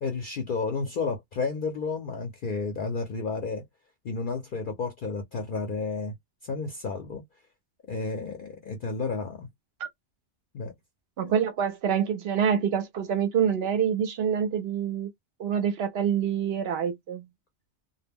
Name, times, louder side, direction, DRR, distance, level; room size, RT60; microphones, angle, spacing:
voice 1, 0.0-3.6 4.0-6.1 6.4-7.2 7.9-9.5 10.5-10.7 11.2-11.3, left 4 dB, 55° left, 0.6 m, -31 dB
voice 2, 11.2-15.1 15.4-17.2, right 8 dB, 65° right, 0.7 m, -26 dB
2.1 x 2.0 x 3.4 m
omnidirectional pair, 1.3 m